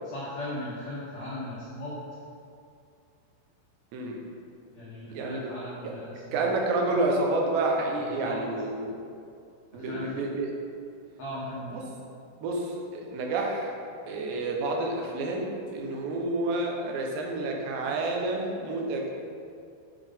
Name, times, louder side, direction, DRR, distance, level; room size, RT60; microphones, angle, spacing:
voice 1, 0.0-2.0 4.7-6.5 8.2-8.4 9.7-10.2 11.2-11.8, left 1 dB, 80° left, -9 dB, 1.5 m, -38 dB
voice 2, 6.3-8.9 9.7-10.5 11.7-11.8 12.4-13.7 14.1-19.1, right 2 dB, 85° right, 0 dB, 3.0 m, -29 dB
7.8 x 5.2 x 3.5 m, 2.4 s
omnidirectional pair, 4.9 m